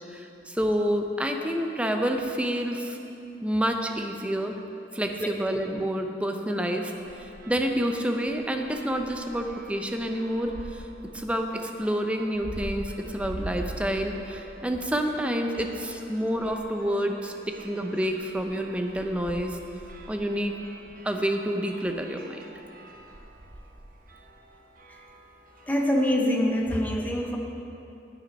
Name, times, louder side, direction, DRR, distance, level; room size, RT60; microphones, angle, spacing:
voice 1, 0.1-3.0 3.4-4.5 4.9-6.9 7.2-10.8 11.1-17.3 17.6-19.6 20.1-20.5 21.0-22.4, equal, 5° right, 4 dB, 0.6 m, -28 dB
sound 1, 6.5-25.9, right 1 dB, 50° right, 1.0 m, -45 dB
voice 2, 25.7-27.4, left 1 dB, 10° left, 0 dB, 1.0 m, -24 dB
9.4 x 9.3 x 5.3 m, 2.8 s
head